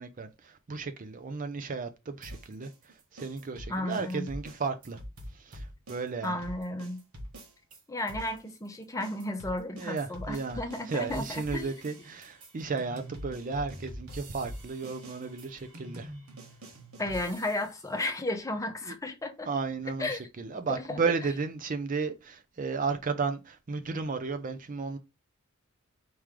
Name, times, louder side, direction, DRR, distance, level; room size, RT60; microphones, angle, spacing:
voice 1, 0.0-5.0 5.3-6.4 9.8-16.1 18.9-19.0 19.5-25.0, right 4 dB, 35° right, 0.5 m, -34 dB
sound 1, 2.2-7.8 8.1-17.8, equal, 70° right, 1.4 m, -45 dB
voice 2, 3.7-4.3 6.2-7.0 7.9-11.7 17.0-19.5 20.0-20.2 20.7-21.0, left 1 dB, 15° left, 0.7 m, -33 dB
4.6 x 3.1 x 3.6 m
head